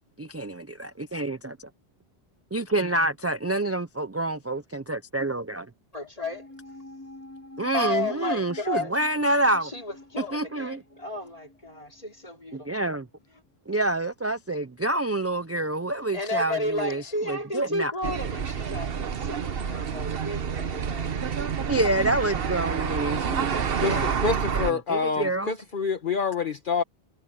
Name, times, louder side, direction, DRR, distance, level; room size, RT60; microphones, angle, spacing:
voice 1, 0.2-1.7 2.5-5.7 7.6-9.7 10.2-10.8 12.5-13.1 13.7-17.9 21.7-24.2 24.5-25.5, right 2 dB, 20° right, 0.4 m, -27 dB
voice 2, 5.9-6.5 7.7-9.0 9.6-12.7 16.1-21.2, left 2 dB, 35° left, 4.0 m, -33 dB
sound 1, 6.2-12.8 13.0-13.1, left 1 dB, 15° left, 5.1 m, -47 dB
sound 2, 18.0-24.7, right 7 dB, 65° right, 1.2 m, -28 dB
voice 3, 23.8-26.8, left 5 dB, 55° left, 1.3 m, -27 dB
omnidirectional pair, 1.1 m